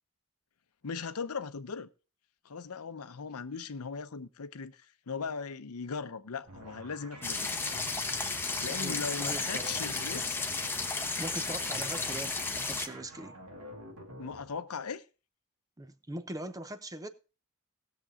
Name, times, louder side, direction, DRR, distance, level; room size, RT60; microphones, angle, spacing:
voice 1, 0.8-1.9 2.4-7.6 8.6-10.4 14.2-15.0, left 5 dB, 85° left, 0.7 m, -38 dB
sound 1, 6.4-14.5, right 1 dB, 85° right, 2.3 m, -49 dB
sound 2, 7.2-12.9, left 3 dB, 10° left, 0.9 m, -33 dB
voice 2, 8.6-9.8 11.2-13.4 15.8-17.1, right 1 dB, 15° right, 0.7 m, -41 dB
18.5 x 6.7 x 3.7 m
head